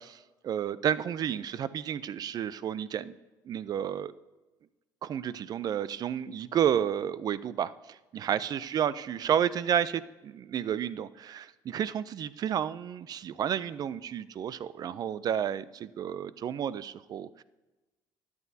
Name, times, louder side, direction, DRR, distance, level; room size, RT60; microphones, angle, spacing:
voice 1, 0.0-3.1 3.5-4.1 5.0-17.4, right 9 dB, 50° right, 17 dB, 0.4 m, -31 dB
13.5 x 9.5 x 2.8 m, 1.1 s
supercardioid pair, 85°, 8 cm